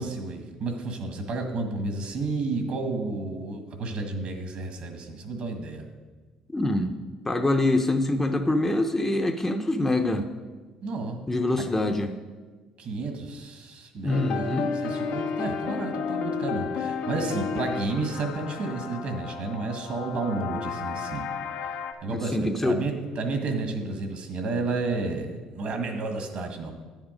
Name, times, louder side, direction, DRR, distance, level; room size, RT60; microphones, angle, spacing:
voice 1, 0.0-5.8 10.8-11.2 12.8-21.2 22.0-26.7, right 3 dB, 60° right, 5 dB, 1.6 m, -31 dB
voice 2, 6.5-7.0 7.2-10.3 11.3-12.2 14.0-14.7 22.0-22.8, left 2 dB, 15° left, 5 dB, 0.7 m, -25 dB
sound 1, 14.1-21.9, left 6 dB, 75° left, 0.9 m, -32 dB
9.7 x 7.3 x 5.1 m, 1.4 s
supercardioid pair, 90°, 2 cm